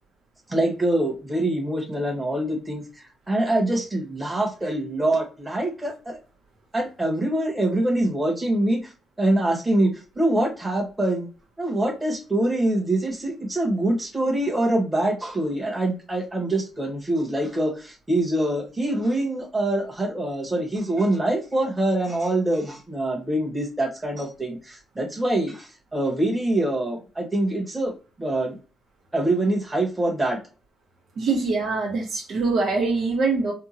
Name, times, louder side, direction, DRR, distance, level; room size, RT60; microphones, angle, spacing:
voice 1, 0.5-6.2 6.7-8.9 9.2-9.9 10.1-11.3 11.6-28.6 29.1-30.4, right 1 dB, 15° right, 0 dB, 1.4 m, -24 dB
voice 2, 31.2-33.5, right 3 dB, 70° right, -1 dB, 1.4 m, -23 dB
3.6 x 2.3 x 2.9 m, 0.34 s
cardioid pair, 90°, 0 cm